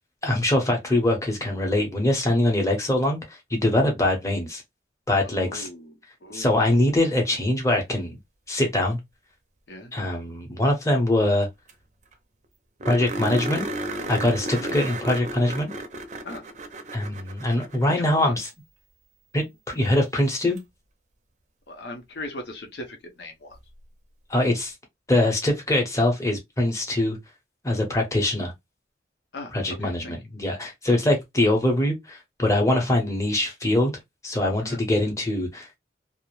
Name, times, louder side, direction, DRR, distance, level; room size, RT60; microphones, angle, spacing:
voice 1, 0.2-4.6 5.1-5.7 6.3-8.2 8.5-9.0 9.9-11.5 12.9-13.7 14.1-15.7 16.9-18.5 19.3-20.6 24.3-24.7 25.1-27.2 27.6-28.5 29.5-33.9 34.2-35.8, left 1 dB, 15° left, 0.7 m, -23 dB
voice 2, 5.2-5.9 6.2-6.6 9.7-9.9 14.5-14.8 16.2-16.5 17.9-18.4 21.7-23.6 29.3-29.5 29.8-30.1 34.6-34.8, left 1 dB, 75° left, 0.7 m, -38 dB
sound 1, 11.4-11.5 11.7-11.8 12.1-12.2 12.8-18.2 20.6-20.7 23.5-23.6, right 2 dB, 40° right, 0.5 m, -33 dB
2.3 x 2.0 x 3.0 m
head